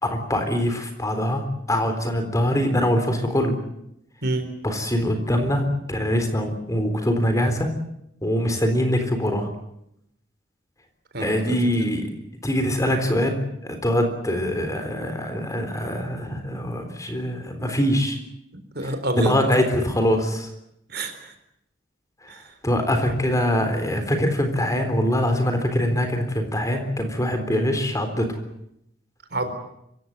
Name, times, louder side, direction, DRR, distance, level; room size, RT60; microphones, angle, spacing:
voice 1, 0.0-3.6 4.6-7.7 8.2-9.5 11.2-12.1 12.4-18.2 18.8-20.5 22.6-28.4, equal, 20° left, 6 dB, 3.8 m, -23 dB
voice 2, 11.1-11.9 17.6-17.7 18.5-19.4 20.9-21.3 22.3-22.5 27.5-27.7 29.3-29.5, right 2 dB, 60° right, 8 dB, 4.1 m, -29 dB
26.0 x 16.5 x 9.6 m, 0.80 s
head